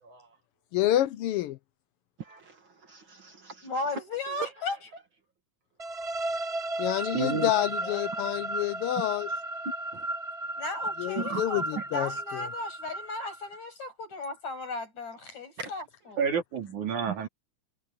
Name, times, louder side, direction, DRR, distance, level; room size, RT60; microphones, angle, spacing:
voice 1, 0.7-1.6 6.8-9.3 11.0-12.4, left 13 dB, 85° left, 1.2 m, -28 dB
voice 2, 2.2-3.7 11.2-11.9 15.6-15.7 17.1-17.2, right 6 dB, 45° right, 2.3 m, -39 dB
voice 3, 3.6-4.8 7.8-8.6 10.6-16.3, left 3 dB, 65° left, 9.3 m, -36 dB
sound 1, 5.8-13.6, right 2 dB, 10° right, 5.7 m, -34 dB
voice 4, 7.1-7.5 16.2-17.3, right 6 dB, 80° right, 4.2 m, -29 dB
omnidirectional pair, 3.4 m